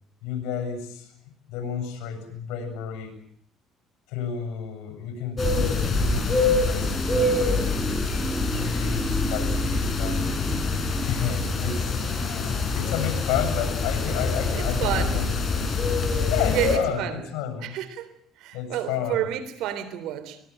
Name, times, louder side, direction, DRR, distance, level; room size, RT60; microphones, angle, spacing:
voice 1, 0.2-1.1 1.5-3.1 4.1-8.0 8.5-10.2 11.0-11.9 12.3-15.8 16.3-17.8 18.5-19.3, left 8 dB, 90° left, 7 dB, 7.3 m, -31 dB
sound 1, 5.4-16.8, left 3 dB, 35° left, 5.9 m, -25 dB
sound 2, 6.8-12.8 13.1-13.2, right 2 dB, 15° right, 2.3 m, -34 dB
voice 2, 14.6-15.2 16.5-17.2 17.6-18.1 18.4-20.4, right 12 dB, 80° right, 11 dB, 3.6 m, -30 dB
23.5 x 22.0 x 9.0 m, 0.66 s
cardioid pair, 95°, 0 cm